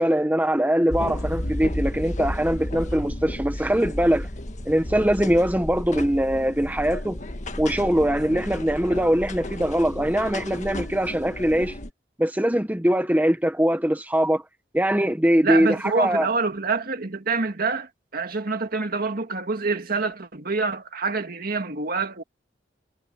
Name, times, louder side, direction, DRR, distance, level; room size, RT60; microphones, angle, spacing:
voice 1, 0.0-4.3 4.6-7.2 7.6-11.8 12.2-14.4 14.7-16.3, equal, 10° right, 1.3 m, -22 dB
sound 1, 0.9-11.9, left 1 dB, 40° left, 1.7 m, -33 dB
voice 2, 15.4-22.2, right 4 dB, 55° right, 1.9 m, -26 dB
head